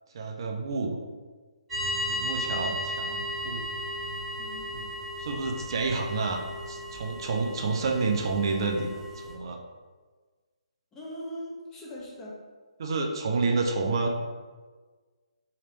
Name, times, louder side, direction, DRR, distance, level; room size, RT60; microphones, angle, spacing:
voice 1, 0.1-1.0 2.1-3.7 4.7-4.9 5.2-6.4 6.7-8.9 9.2-9.6 12.8-14.1, right 4 dB, 40° right, 2 dB, 0.4 m, -29 dB
sound 1, 1.7-9.3, left 1 dB, 10° right, 1.2 m, -35 dB
voice 2, 10.9-12.4, equal, 15° left, -5 dB, 0.6 m, -40 dB
3.0 x 2.9 x 2.9 m, 1.4 s
figure-of-eight pair, 140°, 4 cm